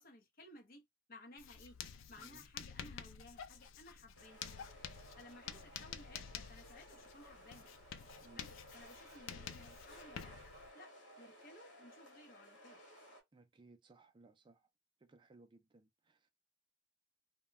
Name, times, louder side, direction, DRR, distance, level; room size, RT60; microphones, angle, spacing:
voice 1, 0.0-1.8 2.1-4.5 5.2-7.7 8.3-12.8, left 1 dB, 50° left, 0.8 m, -58 dB
Writing, 1.4-10.7, left 8 dB, 85° left, 0.3 m, -50 dB
sound 1, 4.1-13.2, equal, 65° left, 1.2 m, -58 dB
voice 2, 13.3-14.6 15.1-16.3, right 3 dB, 25° right, 0.3 m, -63 dB
2.2 x 2.2 x 3.2 m
head